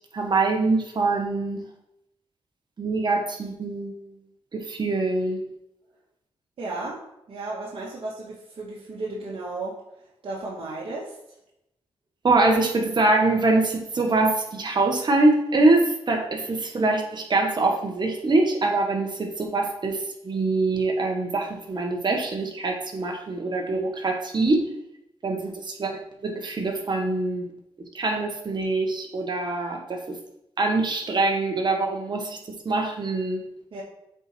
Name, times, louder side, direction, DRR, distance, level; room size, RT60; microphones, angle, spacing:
voice 1, 0.1-1.6 2.8-4.0 4.5-5.4 12.2-24.6 25.2-25.9 26.2-27.5 27.9-30.0 30.6-32.4 32.6-33.4, right 2 dB, 45° right, 2 dB, 1.7 m, -24 dB
voice 2, 6.6-7.0 7.3-9.8 10.2-11.2 25.4-25.5 33.7-33.8, right 2 dB, 60° right, -5 dB, 1.9 m, -34 dB
7.9 x 4.5 x 4.5 m, 0.83 s
cardioid pair, 75°, 10 cm